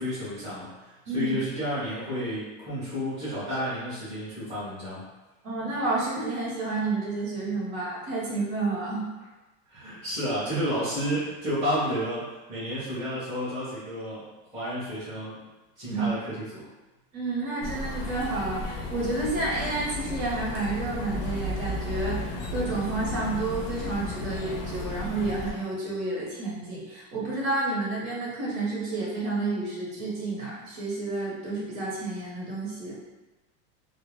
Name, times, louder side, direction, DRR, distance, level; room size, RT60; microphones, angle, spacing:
voice 1, 0.0-5.0 9.7-14.3 14.5-15.4 15.8-16.6, equal, 10° right, -14 dB, 0.6 m, -31 dB
voice 2, 5.4-9.0 15.9-16.1 17.1-33.0, right 3 dB, 85° right, -6 dB, 1.1 m, -30 dB
sound 1, 17.6-25.5, left 1 dB, 50° left, 0.5 m, -34 dB
2.4 x 2.1 x 3.0 m, 1.1 s
supercardioid pair, 170°, 41 cm